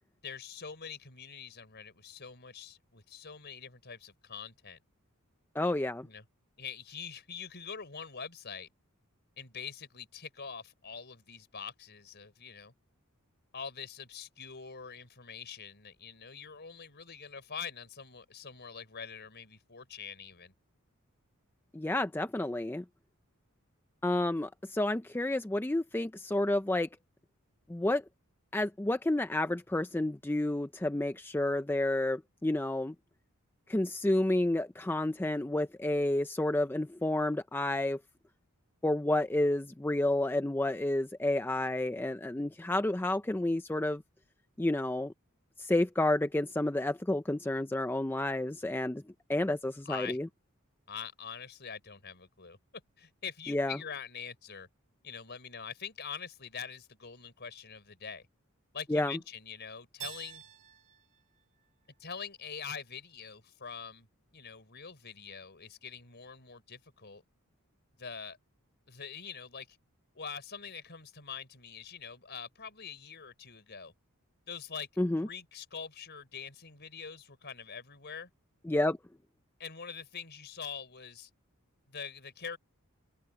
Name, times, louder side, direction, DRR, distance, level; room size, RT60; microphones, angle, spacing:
voice 1, 0.2-4.8 6.0-6.2 6.6-8.7 9.4-12.7 13.5-20.5 49.8-50.2 50.9-52.6 53.0-54.7 55.0-58.3 58.7-60.4 62.0-64.1 64.3-67.2 68.0-68.4 68.9-69.8 70.1-73.9 74.5-74.9 75.2-78.3 79.6-81.3 81.9-82.6, left 6 dB, 50° left, 4.9 m, -44 dB
voice 2, 5.6-6.1 21.7-22.8 24.0-26.9 27.7-28.0 28.5-32.9 33.7-38.0 38.8-44.0 44.6-45.1 45.6-49.0 49.3-50.3 53.5-53.8 58.9-59.2 75.0-75.3 78.7-79.0, left 1 dB, 10° left, 0.4 m, -30 dB
Keyboard (musical), 60.0-62.8, right 8 dB, 35° right, 7.4 m, -50 dB
head